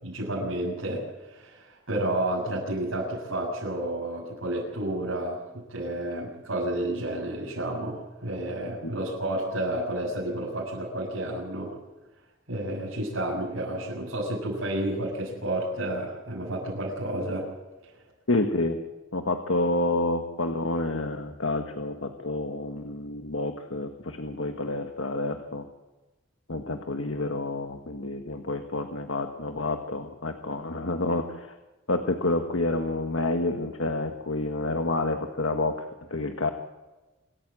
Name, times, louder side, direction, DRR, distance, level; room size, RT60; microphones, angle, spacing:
voice 1, 0.0-11.7 12.5-17.5, right 1 dB, 80° right, -6 dB, 7.6 m, -31 dB
voice 2, 18.3-18.8 19.1-25.7 26.5-31.5 31.9-35.8 36.1-36.5, left 2 dB, 75° left, 5 dB, 1.6 m, -29 dB
26.5 x 14.5 x 7.7 m, 1.1 s
head